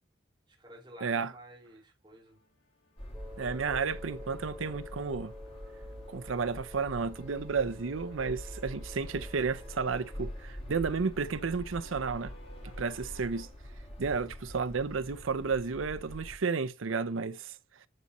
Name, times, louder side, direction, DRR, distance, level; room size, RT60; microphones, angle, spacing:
voice 1, 0.5-2.4 12.6-13.0, right 1 dB, 20° right, 2.9 m, -52 dB
voice 2, 1.0-1.3 3.4-5.3 6.1-12.3 12.8-13.5 14.0-17.6, right 5 dB, 85° right, 0.6 m, -32 dB
sound 1, 2.2-6.6 8.0-13.5, left 1 dB, 80° left, 3.5 m, -61 dB
sound 2, 3.0-16.4, equal, 30° left, 2.5 m, -45 dB
Wind instrument woodwind instrument, 3.1-10.4, left 2 dB, 5° right, 2.3 m, -50 dB
12.0 x 4.2 x 2.6 m
head